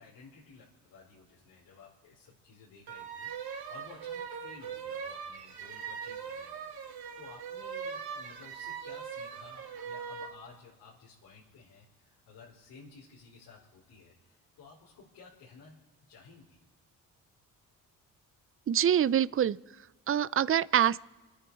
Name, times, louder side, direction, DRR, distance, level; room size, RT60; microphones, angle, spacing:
voice 1, 0.0-16.6, left 4 dB, 75° left, 4.7 m, -55 dB
sound 1, 2.9-10.4, right 6 dB, 65° right, 2.3 m, -41 dB
voice 2, 18.7-19.6 20.1-21.0, right 9 dB, 35° right, 0.6 m, -25 dB
30.0 x 10.0 x 4.9 m
hypercardioid pair, 50°, 40 cm